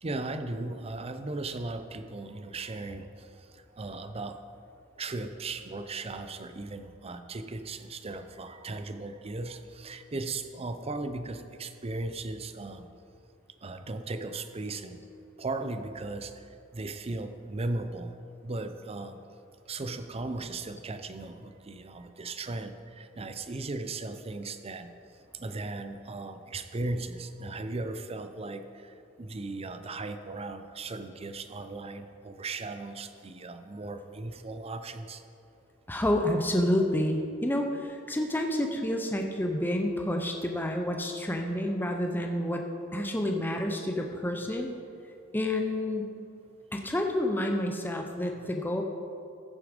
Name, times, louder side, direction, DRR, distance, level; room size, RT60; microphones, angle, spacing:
voice 1, 0.0-4.4 5.0-12.9 13.6-15.0 15.4-16.5 16.7-18.1 18.4-19.2 19.7-24.9 25.3-35.2, right 2 dB, 30° right, 9 dB, 0.6 m, -37 dB
voice 2, 35.9-42.7 42.9-44.7 45.3-46.1 46.7-48.8, left 1 dB, 10° left, 3 dB, 0.6 m, -29 dB
14.5 x 6.8 x 5.1 m, 2.6 s
head